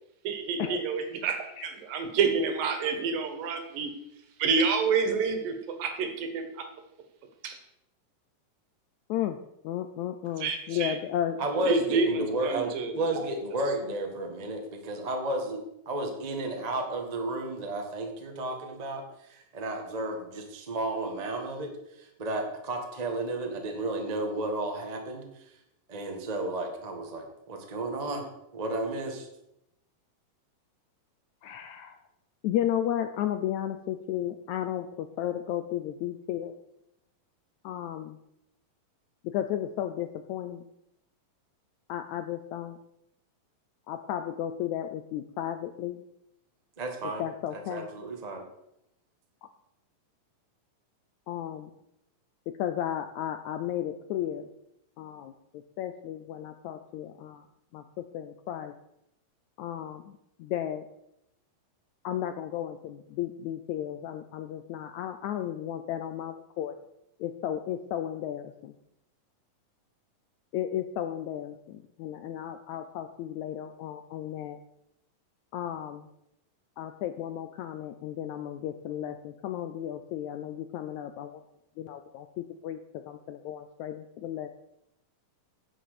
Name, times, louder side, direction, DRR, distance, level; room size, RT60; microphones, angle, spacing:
voice 1, 0.2-3.9 4.4-6.7 7.4-7.6 10.4-11.0 11.6-13.2, right 5 dB, 80° right, 6 dB, 3.2 m, -28 dB
voice 2, 9.6-11.4 31.4-32.0 32.4-36.5 37.6-38.2 39.3-40.6 41.9-42.8 43.9-46.0 47.2-47.9 51.3-51.7 52.6-54.5 55.0-55.3 55.8-57.4 57.7-57.8 58.1-58.7 59.6-60.1 60.4-60.8 62.0-66.7 67.2-68.7 70.5-74.6 75.5-76.1 76.8-81.4 81.8-82.8 83.1-84.5, left 11 dB, 80° left, 9 dB, 1.7 m, -34 dB
voice 3, 11.4-19.0 19.3-25.4 25.9-28.3 28.5-29.3 46.8-48.4, right 2 dB, 50° right, 3 dB, 0.4 m, -33 dB
10.0 x 7.8 x 6.7 m, 0.82 s
omnidirectional pair, 3.9 m